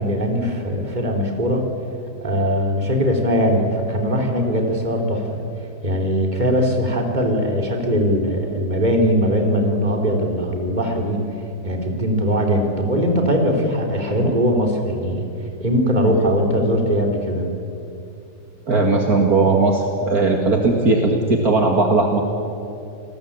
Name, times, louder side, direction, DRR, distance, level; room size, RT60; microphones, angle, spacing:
voice 1, 0.0-1.7 2.2-5.4 5.8-11.2 11.6-15.3 15.6-17.5, equal, 25° right, 2 dB, 3.6 m, -20 dB
voice 2, 18.7-22.2, right 3 dB, 55° right, 2 dB, 2.6 m, -18 dB
29.0 x 20.0 x 8.7 m, 2.6 s
omnidirectional pair, 2.0 m